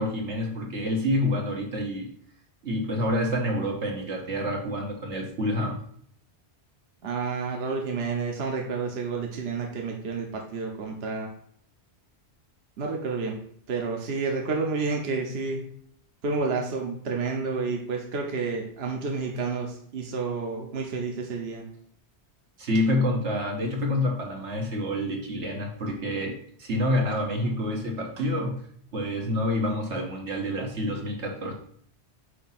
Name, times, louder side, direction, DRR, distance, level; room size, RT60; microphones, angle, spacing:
voice 1, 0.0-2.1 2.6-5.8 22.6-28.6 28.9-31.5, left 1 dB, 80° right, 1 dB, 1.6 m, -28 dB
voice 2, 7.0-11.3 12.8-13.4 13.7-15.6 16.2-21.6, right 4 dB, 65° right, 1 dB, 1.2 m, -30 dB
8.2 x 2.8 x 5.8 m, 0.63 s
omnidirectional pair, 1.2 m